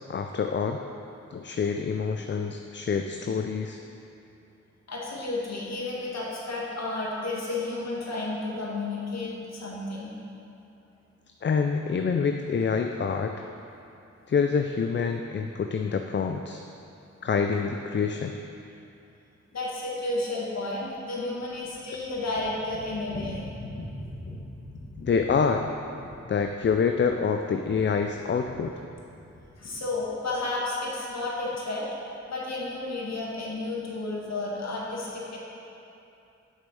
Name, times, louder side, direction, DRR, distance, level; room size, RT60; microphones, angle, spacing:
voice 1, 0.1-0.8 1.3-3.8 11.4-13.3 14.3-16.6 17.2-18.4 25.0-25.7 26.3-28.7 29.7-29.8, left 5 dB, 40° left, 5 dB, 0.4 m, -26 dB
voice 2, 4.9-10.1 19.5-24.4 25.0-25.1 28.4-28.5 29.6-31.9 32.3-35.4, left 2 dB, 65° left, -5 dB, 1.9 m, -32 dB
6.4 x 5.3 x 6.3 m, 2.7 s
cardioid pair, 55°, 29 cm